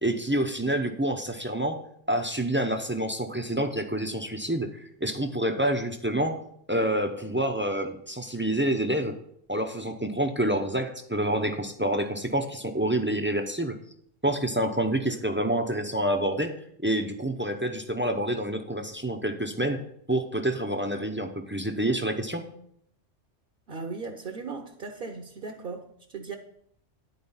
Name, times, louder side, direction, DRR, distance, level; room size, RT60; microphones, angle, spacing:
voice 1, 0.0-1.8 2.1-6.4 6.7-9.1 9.5-13.8 14.2-16.5 16.8-19.8 20.1-22.4, right 1 dB, 15° right, 5 dB, 0.4 m, -27 dB
voice 2, 23.7-26.4, right 4 dB, 50° right, 4 dB, 0.9 m, -37 dB
11.0 x 4.4 x 5.5 m, 0.68 s
omnidirectional pair, 1.2 m